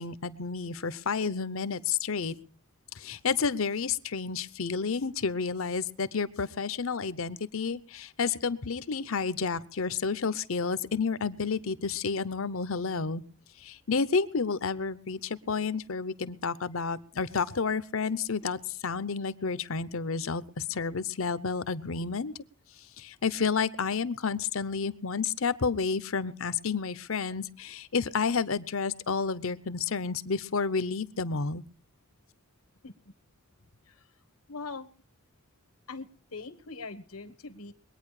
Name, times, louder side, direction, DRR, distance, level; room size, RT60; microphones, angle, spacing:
voice 1, 0.0-2.4 3.0-13.2 13.6-22.3 23.0-31.6, left 5 dB, 70° left, 15 dB, 0.8 m, -30 dB
voice 2, 34.5-34.9 35.9-37.7, left 3 dB, 85° left, 9 dB, 1.2 m, -42 dB
22.5 x 9.3 x 4.8 m, 0.42 s
head